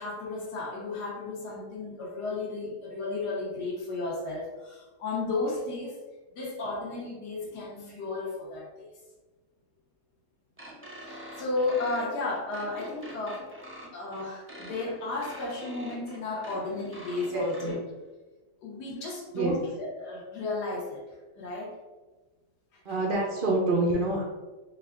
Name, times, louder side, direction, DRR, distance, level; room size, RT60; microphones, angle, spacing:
voice 1, 0.0-6.0 6.3-8.9 11.0-13.4 13.9-17.8 18.6-21.0 21.4-21.8 22.7-22.8, left 3 dB, 75° left, -4 dB, 1.4 m, -33 dB
sound 1, 10.6-17.8, equal, 15° right, 0.4 m, -45 dB
voice 2, 17.3-17.7 19.3-19.6 22.8-24.2, right 2 dB, 85° right, -2 dB, 0.4 m, -27 dB
4.6 x 2.2 x 3.5 m, 1.2 s
omnidirectional pair, 1.7 m